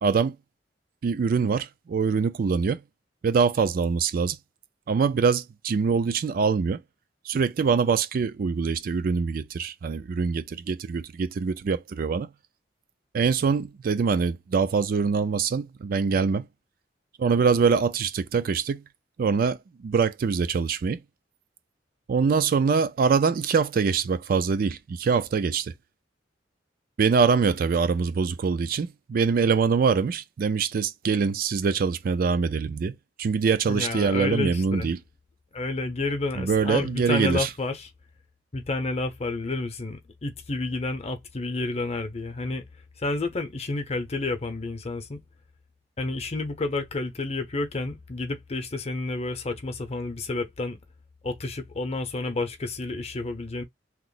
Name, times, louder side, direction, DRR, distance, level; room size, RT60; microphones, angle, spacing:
voice 1, 0.0-0.4 1.0-2.8 3.2-4.4 4.9-6.8 7.3-12.3 13.1-16.4 17.2-18.8 19.2-21.0 22.1-25.7 27.0-35.0 36.4-37.5, right 5 dB, 50° right, 0.3 m, -24 dB
voice 2, 33.7-34.9 35.5-37.9 38.5-42.6 43.0-45.2 46.0-50.8 51.2-53.6, left 2 dB, 35° left, 0.7 m, -30 dB
3.0 x 2.0 x 3.8 m
head